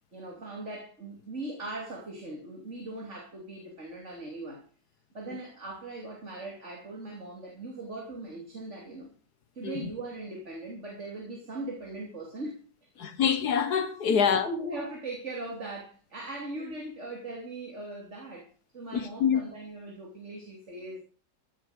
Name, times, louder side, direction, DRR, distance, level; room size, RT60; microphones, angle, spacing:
voice 1, 0.1-4.6 5.1-9.1 9.5-12.6 14.1-18.5 18.7-21.0, right 2 dB, 40° right, 3.2 m, -39 dB
voice 2, 13.0-14.5 18.9-19.4, left 7 dB, 65° left, 1.6 m, -26 dB
15.5 x 7.2 x 6.5 m
omnidirectional pair, 1.8 m